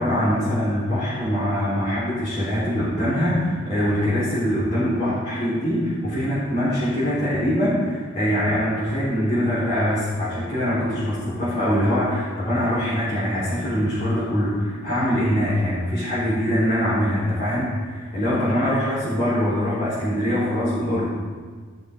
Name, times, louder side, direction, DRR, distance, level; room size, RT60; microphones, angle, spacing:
voice 1, 0.0-21.1, equal, 35° left, -13 dB, 4.1 m, -23 dB
15.0 x 6.7 x 5.2 m, 1.5 s
head